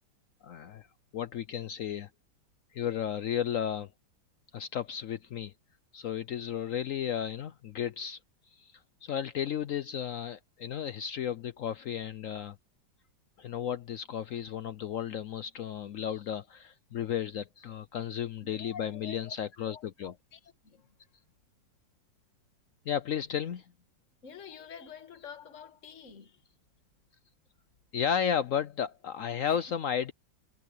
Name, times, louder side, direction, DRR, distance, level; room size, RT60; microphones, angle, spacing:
voice 1, 0.4-0.9 1.1-2.1 2.7-3.9 4.5-5.5 5.9-8.2 8.5-8.7 9.0-12.6 13.4-20.1 22.9-23.6 27.9-30.1, left 9 dB, 80° left, 0.7 m, -33 dB
voice 2, 18.4-19.4 19.7-20.9 24.2-26.4 29.4-29.6, left 7 dB, 40° left, 2.2 m, -48 dB
omnidirectional pair, 2.1 m